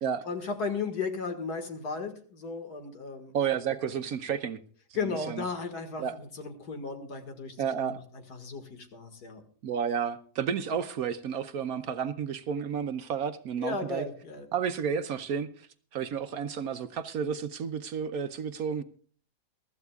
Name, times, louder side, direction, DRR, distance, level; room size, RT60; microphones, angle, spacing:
voice 1, 0.3-3.4 4.9-9.4 13.6-14.5, left 4 dB, 70° left, 2.3 m, -35 dB
voice 2, 3.3-4.6 4.9-5.4 6.0-6.2 7.6-8.0 9.6-14.1 14.5-18.8, right 7 dB, 65° right, 1.1 m, -31 dB
23.0 x 13.5 x 2.4 m
omnidirectional pair, 1.8 m